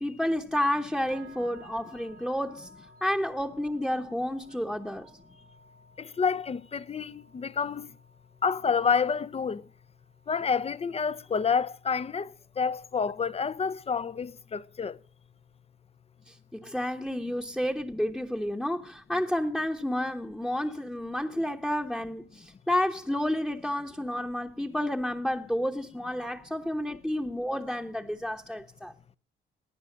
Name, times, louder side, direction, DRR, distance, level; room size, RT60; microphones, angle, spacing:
voice 1, 0.0-2.7 3.0-5.1 16.3-28.9, left 1 dB, ahead, 1.0 m, -30 dB
sound 1, 1.1-11.2, right 2 dB, 85° right, 3.5 m, -56 dB
voice 2, 6.0-7.9 8.4-9.6 10.3-12.3 12.6-15.0, left 6 dB, 30° left, 0.7 m, -28 dB
18.0 x 9.6 x 6.5 m
cardioid pair, 90°, 20 cm